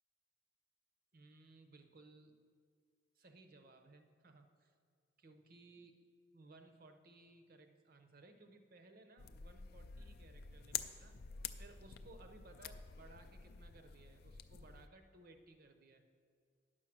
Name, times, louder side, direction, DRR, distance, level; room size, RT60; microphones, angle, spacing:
voice 1, 1.1-2.4 3.2-4.7 5.2-6.0 6.3-11.2 11.5-16.0, right 2 dB, 50° right, 7 dB, 0.7 m, -61 dB
sound 1, 9.2-14.9, left 8 dB, 50° left, 0.4 m, -48 dB
9.8 x 6.3 x 6.0 m, 2.1 s
head